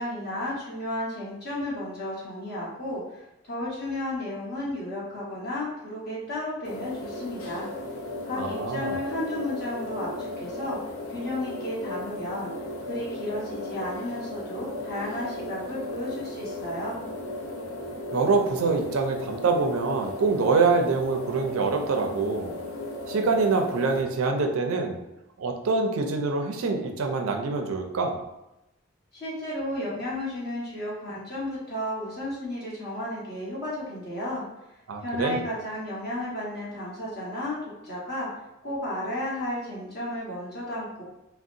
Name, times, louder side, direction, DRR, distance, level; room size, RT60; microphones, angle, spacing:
voice 1, 0.0-7.7 8.2-10.8 11.1-12.5 12.8-17.0 29.1-34.4 35.0-38.3 38.6-41.0, left 1 dB, 45° left, -6 dB, 1.1 m, -33 dB
sound 1, 6.6-24.0, left 2 dB, 80° left, 0.5 m, -36 dB
voice 2, 8.3-9.0 18.1-22.6 23.1-25.0 25.4-28.2 34.9-35.4, right 4 dB, 80° right, 4 dB, 0.4 m, -25 dB
3.8 x 2.1 x 2.5 m, 0.91 s
head